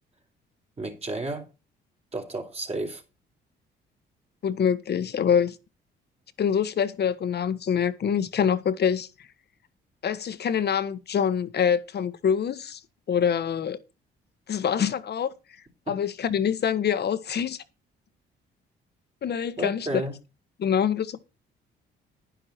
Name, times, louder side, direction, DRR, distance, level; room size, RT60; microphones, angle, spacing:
voice 1, 0.8-1.5 2.1-3.0 15.9-16.0 19.6-20.2, right 2 dB, 30° right, 3.9 m, -32 dB
voice 2, 4.4-5.6 6.4-9.1 10.0-12.8 13.1-13.8 14.5-15.3 15.9-17.6 19.2-19.9 20.6-21.2, left 8 dB, 55° left, 1.3 m, -25 dB
10.5 x 10.5 x 4.4 m
cardioid pair, 90°, 20 cm